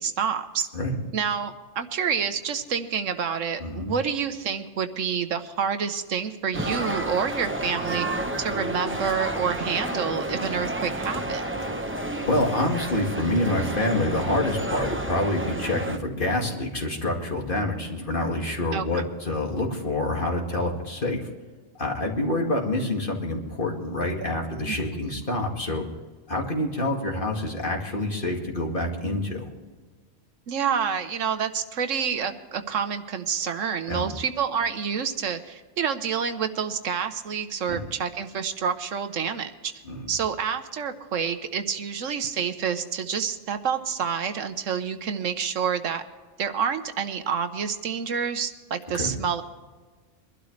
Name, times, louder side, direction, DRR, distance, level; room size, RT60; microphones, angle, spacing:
voice 1, 0.0-0.7 1.1-8.1 8.4-11.4 18.7-19.0 24.7-24.8 25.1-25.2 30.5-39.7 40.1-46.0 46.4-49.4, right 7 dB, 80° right, 8 dB, 1.3 m, -28 dB
voice 2, 3.6-3.9 12.2-21.3 21.8-25.8 26.3-29.5 33.9-34.1 37.7-37.8 39.8-40.1 48.9-49.2, left 1 dB, 45° left, 1 dB, 2.3 m, -27 dB
sound 1, 6.5-16.0, right 1 dB, 10° right, 0.7 m, -30 dB
23.0 x 12.0 x 3.2 m, 1.4 s
omnidirectional pair, 1.3 m